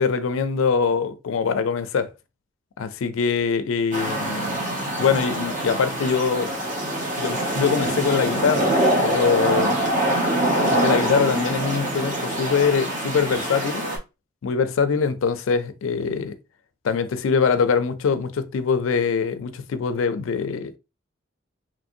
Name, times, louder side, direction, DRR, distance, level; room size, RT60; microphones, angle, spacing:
voice 1, 0.0-2.1 2.8-4.6 5.0-6.5 7.2-8.7 9.0-9.8 10.7-13.8 14.4-16.4 16.8-20.8, left 5 dB, 80° left, 0.4 m, -23 dB
sound 1, 3.9-14.0, right 1 dB, 40° right, 0.7 m, -24 dB
3.0 x 2.6 x 2.5 m
head